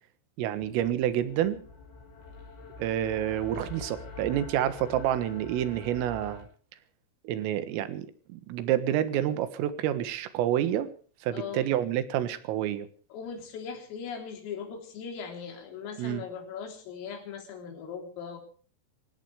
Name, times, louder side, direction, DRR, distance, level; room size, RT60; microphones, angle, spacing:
voice 1, 0.4-1.6 2.8-6.5 7.3-10.9 11.2-12.9 16.0-16.2, right 11 dB, 85° right, 12 dB, 4.1 m, -28 dB
sound 1, 0.6-6.4, left 3 dB, 65° left, 7.9 m, -45 dB
voice 2, 11.3-11.7 13.1-18.4, left 6 dB, 85° left, 5 dB, 6.1 m, -39 dB
24.5 x 17.5 x 3.4 m, 0.43 s
omnidirectional pair, 5.8 m